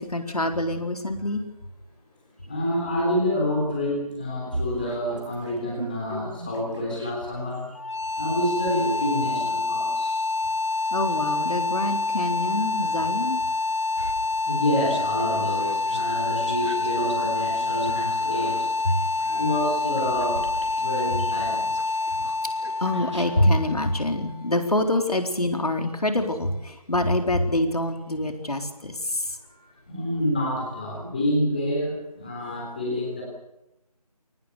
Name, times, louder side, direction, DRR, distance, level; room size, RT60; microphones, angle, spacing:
voice 1, 0.0-1.4 10.9-13.4 18.9-19.4 22.8-29.3, left 1 dB, 70° left, 6 dB, 4.0 m, -25 dB
voice 2, 2.5-7.7 8.2-10.2 14.4-18.7 19.2-20.4 20.8-21.7 29.9-33.2, left 1 dB, 15° left, -3 dB, 3.4 m, -27 dB
sound 1, 4.5-7.4 8.0-12.3 12.8-23.5, right 1 dB, 45° right, 3.9 m, -40 dB
sound 2, 7.7-24.7, left 3 dB, 45° left, 0.9 m, -27 dB
23.5 x 19.0 x 6.9 m, 0.88 s
figure-of-eight pair, 175°, 20 cm